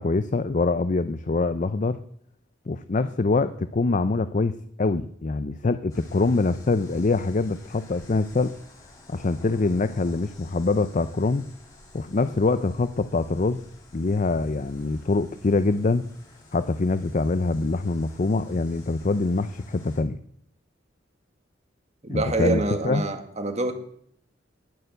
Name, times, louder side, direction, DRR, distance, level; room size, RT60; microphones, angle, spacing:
voice 1, 0.0-2.0 2.7-8.5 9.1-11.5 11.9-13.6 13.9-16.1 16.5-20.2 22.1-23.0, left 3 dB, 40° left, 12 dB, 0.6 m, -24 dB
sound 1, 5.9-20.0, left 2 dB, 20° left, 5.5 m, -51 dB
voice 2, 22.0-23.8, right 2 dB, 35° right, 7 dB, 1.8 m, -26 dB
20.0 x 6.8 x 8.0 m, 0.67 s
head